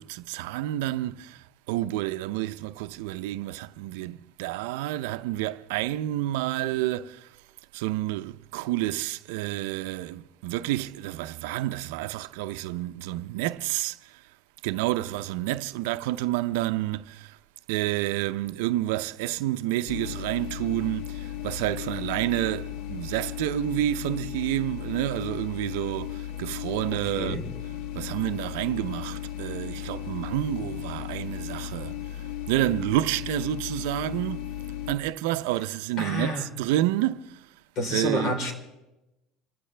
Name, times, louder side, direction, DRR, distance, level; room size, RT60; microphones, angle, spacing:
voice 1, 0.0-7.3 7.7-14.2 14.6-17.4 17.7-27.4 27.9-32.0 32.5-34.5 34.9-37.4 37.9-38.3, right 15 dB, 85° right, 0.5 m, -29 dB
sound 1, 19.9-35.0, left 11 dB, 70° left, 0.9 m, -36 dB
voice 2, 26.9-27.5 36.0-36.5 37.8-38.5, left 1 dB, 50° left, 3.8 m, -29 dB
28.0 x 15.0 x 3.3 m
supercardioid pair, 125°, 0 cm